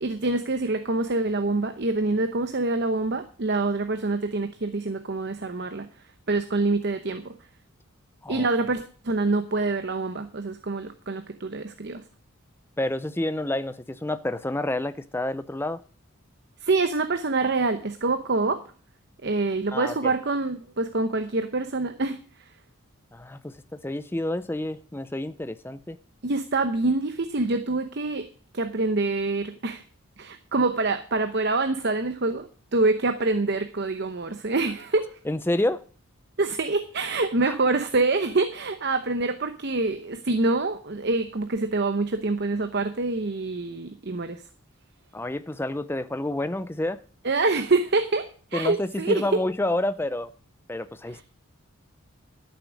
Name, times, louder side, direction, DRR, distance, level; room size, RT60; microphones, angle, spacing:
voice 1, 0.0-5.9 6.3-7.3 8.3-12.0 16.6-18.6 19.2-22.2 26.2-28.2 28.5-29.8 30.2-35.1 36.4-44.4 47.2-48.3 48.5-49.2 51.1-51.2, right 3 dB, 50° right, 0.8 m, -26 dB
voice 2, 12.8-15.8 19.7-20.1 23.1-26.0 35.3-35.8 37.4-37.6 45.1-47.0 48.5-50.3 50.7-51.2, left 1 dB, 10° left, 0.4 m, -29 dB
12.5 x 7.1 x 6.3 m
head